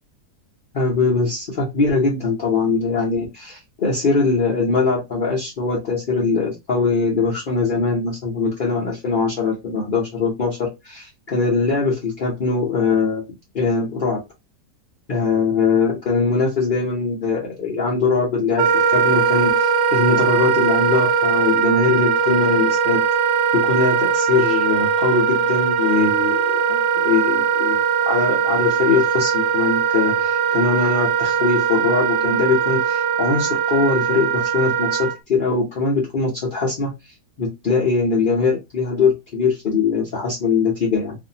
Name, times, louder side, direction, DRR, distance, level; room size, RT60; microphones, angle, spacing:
voice 1, 0.7-13.2 13.5-14.2 15.1-23.0 23.5-27.8 28.1-36.9 37.4-41.2, left 4 dB, 65° left, -4 dB, 0.5 m, -21 dB
Wind instrument woodwind instrument, 18.6-35.2, right 7 dB, 80° right, 1.2 m, -20 dB
2.5 x 2.5 x 2.7 m, 0.22 s
omnidirectional pair, 1.9 m